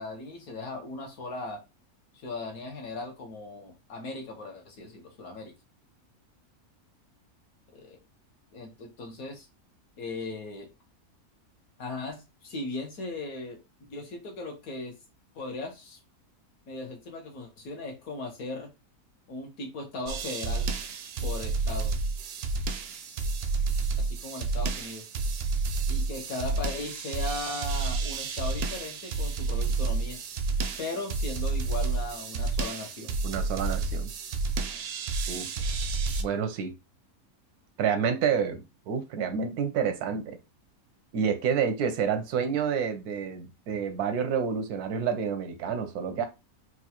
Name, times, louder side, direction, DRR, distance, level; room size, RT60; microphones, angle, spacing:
voice 1, 0.0-1.6 2.1-5.5 7.7-8.0 8.5-9.5 10.0-10.7 11.8-13.6 13.9-14.9 15.3-16.0 16.7-18.7 19.3-20.7 21.2-21.9 24.0-25.0 25.9-30.2 30.8-33.2, left 2 dB, 70° left, 1.6 m, -38 dB
sound 1, 20.1-36.2, right 3 dB, 65° right, 0.6 m, -30 dB
voice 2, 33.2-34.1 35.3-35.5 36.2-36.7 37.8-40.4 41.1-46.3, right 7 dB, 90° right, 1.2 m, -29 dB
4.5 x 2.4 x 2.9 m
omnidirectional pair, 1.6 m